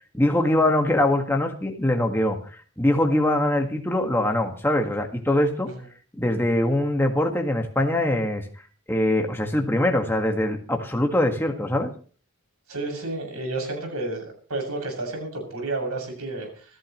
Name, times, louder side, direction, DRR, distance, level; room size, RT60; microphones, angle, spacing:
voice 1, 0.1-5.7 6.2-8.5 8.9-11.9, left 1 dB, 10° left, 3 dB, 1.7 m, -23 dB
voice 2, 12.7-14.2 14.5-16.7, right 2 dB, 90° right, 3 dB, 7.2 m, -31 dB
26.0 x 13.5 x 3.1 m, 0.42 s
head